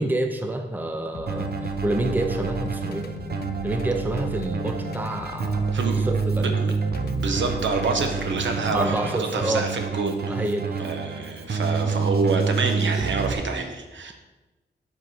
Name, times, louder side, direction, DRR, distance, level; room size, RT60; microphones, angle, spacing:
voice 1, 0.0-3.1 3.6-6.5 8.7-9.7 10.3-10.8, right 1 dB, 10° right, 5 dB, 0.6 m, -28 dB
sound 1, 1.1-9.2, left 6 dB, 55° left, 0.5 m, -38 dB
Keyboard (musical), 1.3-13.3, right 5 dB, 55° right, 0.8 m, -28 dB
voice 2, 5.7-6.1 6.4-10.4 10.8-14.1, right 4 dB, 80° right, 5 dB, 1.1 m, -27 dB
7.6 x 4.7 x 5.6 m, 1.1 s
wide cardioid pair, 165°, 19 cm